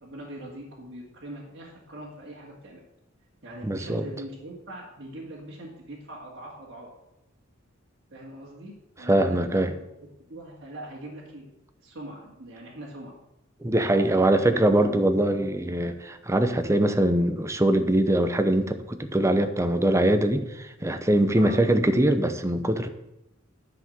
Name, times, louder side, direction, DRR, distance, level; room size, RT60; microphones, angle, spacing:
voice 1, 0.0-2.8 3.4-6.9 8.1-9.7 10.0-11.5 11.8-13.1 14.0-15.1 21.3-21.6, right 1 dB, 60° right, -5 dB, 2.1 m, -42 dB
voice 2, 3.6-4.1 9.1-9.7 13.6-22.9, right 1 dB, 15° right, 8 dB, 0.8 m, -22 dB
10.0 x 5.9 x 7.8 m, 0.89 s
head